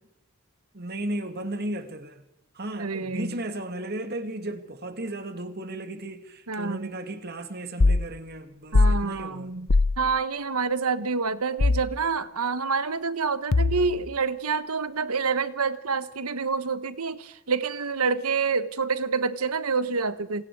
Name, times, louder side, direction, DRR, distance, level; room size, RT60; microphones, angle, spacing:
voice 1, 0.7-2.2 2.5-9.5, right 1 dB, 45° right, 2.3 m, -35 dB
voice 2, 2.8-3.4 6.5-6.9 8.7-9.7 10.0-20.4, right 4 dB, 85° right, 1.3 m, -27 dB
sound 1, 7.8-8.1 8.7-9.0 9.7-10.0 11.6-11.9 13.5-14.0, left 3 dB, 60° left, 0.7 m, -20 dB
28.0 x 19.5 x 4.9 m
head